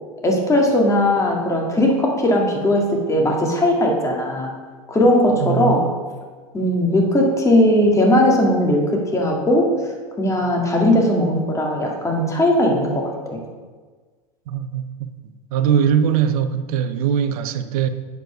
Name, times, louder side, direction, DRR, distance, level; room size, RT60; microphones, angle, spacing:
voice 1, 0.2-4.5 4.9-5.9 6.5-9.7 10.2-13.1, left 1 dB, 15° left, 2.0 m, -18 dB
voice 2, 5.4-5.9 14.5-15.1 15.5-17.9, right 8 dB, 65° right, 0.7 m, -21 dB
8.2 x 4.6 x 6.1 m
hypercardioid pair, 95°, 20 cm